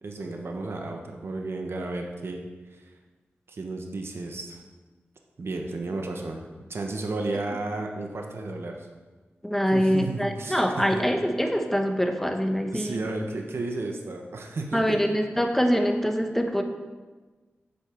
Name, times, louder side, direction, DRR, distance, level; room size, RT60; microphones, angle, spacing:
voice 1, 0.0-2.4 2.7-2.8 3.5-4.6 5.4-8.9 9.7-11.0 12.7-15.1, right 2 dB, 65° right, 2 dB, 1.1 m, -33 dB
voice 2, 9.4-13.0 14.7-16.6, equal, 5° left, 4 dB, 1.1 m, -24 dB
8.4 x 5.5 x 7.6 m, 1.3 s
cardioid pair, 65°, 4 cm